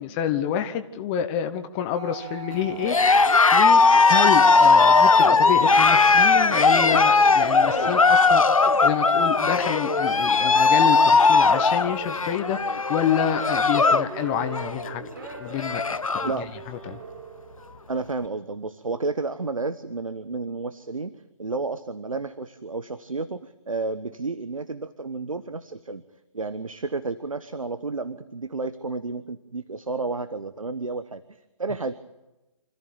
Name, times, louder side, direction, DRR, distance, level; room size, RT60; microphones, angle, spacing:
voice 1, 0.0-3.2 3.5-8.5 8.8-15.1 15.4-16.3 16.7-17.0, left 9 dB, 20° left, 7 dB, 1.1 m, -28 dB
sound 1, 1.9-9.1, right 8 dB, 15° right, 2.2 m, -36 dB
sound 2, 2.7-18.1, right 5 dB, 45° right, 4.2 m, -40 dB
Cheering, 2.8-14.1 14.4-14.8 15.2-15.3 15.5-16.4, left 4 dB, 80° left, 0.9 m, -18 dB
voice 2, 16.1-16.5 16.9-17.0 17.9-21.1 21.4-26.0 26.3-31.9, right 3 dB, 80° right, 13 dB, 1.2 m, -31 dB
26.0 x 14.0 x 8.8 m, 1.0 s
figure-of-eight pair, 145°, 17 cm